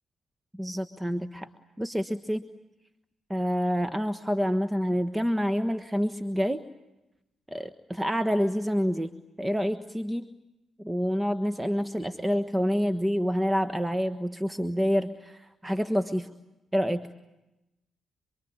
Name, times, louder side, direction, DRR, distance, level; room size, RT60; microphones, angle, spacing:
voice 1, 0.5-1.5 1.8-2.5 3.3-6.6 7.5-10.3 10.8-16.3 16.7-17.1, equal, 10° right, 9 dB, 1.4 m, -27 dB
27.5 x 23.5 x 8.7 m, 0.95 s
hypercardioid pair, 45°, 0 cm